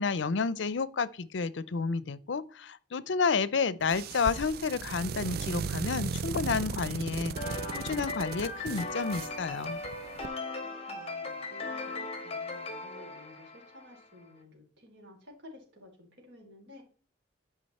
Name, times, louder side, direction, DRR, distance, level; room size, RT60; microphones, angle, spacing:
voice 1, 0.0-9.8, left 5 dB, 75° left, 0.5 m, -31 dB
sound 1, 3.8-10.3, right 5 dB, 55° right, 0.4 m, -37 dB
sound 2, 7.4-14.0, left 3 dB, 30° left, 1.4 m, -38 dB
voice 2, 10.6-16.8, left 1 dB, 70° right, 3.9 m, -53 dB
12.0 x 5.1 x 4.2 m
head